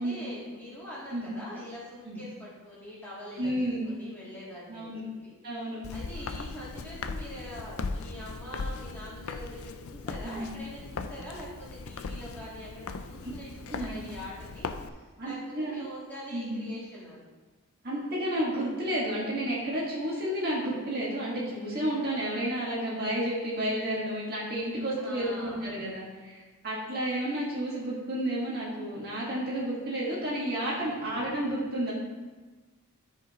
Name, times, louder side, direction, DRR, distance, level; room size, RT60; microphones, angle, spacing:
voice 1, 0.0-5.3 5.9-17.2 25.0-25.8, equal, 10° left, -9 dB, 2.8 m, -44 dB
voice 2, 3.4-3.9 4.7-5.0 5.4-5.8 10.2-10.4 13.7-13.9 15.2-15.8 16.3-16.6 17.8-31.9, right 1 dB, 45° right, -6 dB, 1.9 m, -31 dB
Walk footsteps, 5.8-14.9, left 4 dB, 65° left, 0.5 m, -38 dB
13.0 x 5.2 x 3.1 m, 1.3 s
head